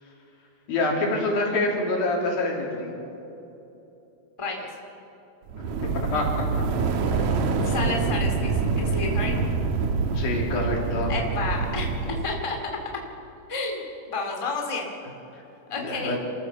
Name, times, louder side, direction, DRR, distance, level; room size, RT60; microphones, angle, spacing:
voice 1, 0.7-3.0 5.9-6.6 10.1-11.1 15.8-16.2, left 2 dB, 80° left, -2 dB, 5.0 m, -26 dB
voice 2, 4.4-4.7 7.6-9.4 11.1-12.6 13.5-14.9 15.7-16.2, left 3 dB, 10° left, 1 dB, 1.9 m, -31 dB
sound 1, 5.5-12.5, right 4 dB, 65° right, 2.3 m, -26 dB
28.5 x 14.0 x 7.0 m, 2.9 s
omnidirectional pair, 4.1 m